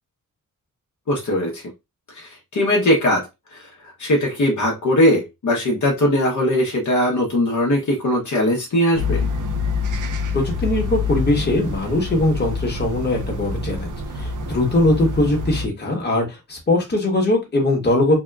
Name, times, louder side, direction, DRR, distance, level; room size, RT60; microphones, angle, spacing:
voice 1, 1.1-1.6 2.1-3.3 3.5-9.2, left 1 dB, 60° left, -2 dB, 0.8 m, -20 dB
sound 1, 8.9-15.7, left 3 dB, 65° right, 0.5 m, -26 dB
voice 2, 10.3-18.1, left 2 dB, 30° left, 0 dB, 1.1 m, -21 dB
2.8 x 2.2 x 2.3 m, 0.23 s
wide cardioid pair, 85°, 34 cm